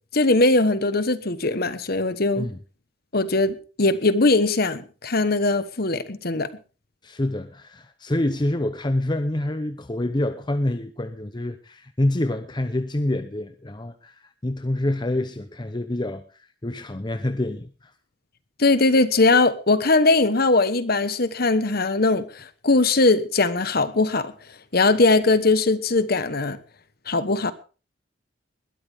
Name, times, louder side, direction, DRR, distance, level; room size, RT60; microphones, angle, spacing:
voice 1, 0.1-2.5 3.1-6.5 18.6-24.3 24.7-26.6 27.1-27.5, left 3 dB, 55° left, 1.3 m, -20 dB
voice 2, 7.0-17.9, left 1 dB, 25° left, 0.8 m, -27 dB
21.0 x 13.0 x 3.6 m
head